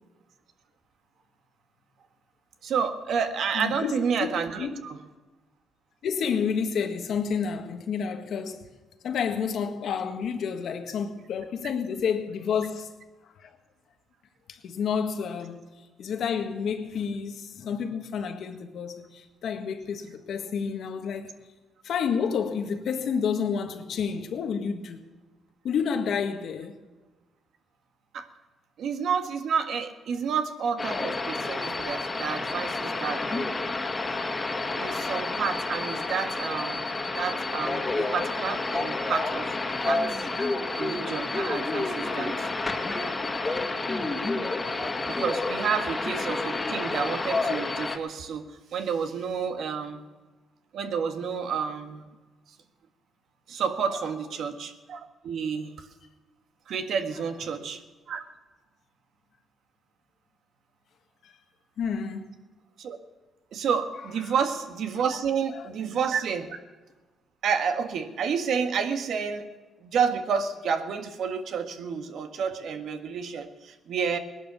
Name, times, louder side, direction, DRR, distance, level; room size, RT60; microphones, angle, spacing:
voice 1, 2.6-5.0 28.1-28.3 28.8-33.5 34.8-39.5 39.8-40.3 40.8-42.5 44.8-50.0 50.7-52.1 53.5-55.9 56.7-57.8 58.1-58.2 62.8-63.0 63.5-66.6 67.4-69.5 69.8-74.2, right 6 dB, 70° right, 1.5 m, -30 dB
voice 2, 3.5-3.9 4.2-4.3 4.6-4.8 6.0-8.7 9.0-12.9 13.4-13.5 14.5-15.7 16.0-21.3 21.8-25.0 25.6-26.7 61.2-61.4 61.8-62.4 64.2-64.3 65.5-65.7, left 6 dB, 70° left, 1.6 m, -30 dB
sound 1, 30.8-48.0, left 3 dB, 25° left, 1.9 m, -29 dB
19.0 x 11.0 x 6.9 m
cardioid pair, 90°, 0 cm